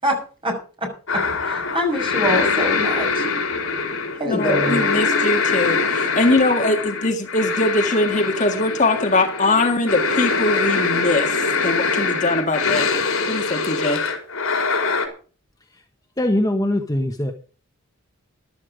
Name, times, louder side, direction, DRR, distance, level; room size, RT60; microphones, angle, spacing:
voice 1, 0.0-3.2 4.2-4.9, left 1 dB, 25° right, 2 dB, 6.2 m, -25 dB
sound 1, 1.1-15.1, left 4 dB, 70° left, 4.4 m, -23 dB
voice 2, 4.3-12.9 13.3-14.0, left 2 dB, 35° left, 4 dB, 1.8 m, -21 dB
voice 3, 16.2-17.3, left 1 dB, 15° left, 4 dB, 1.1 m, -21 dB
14.5 x 12.0 x 5.0 m, 0.38 s
head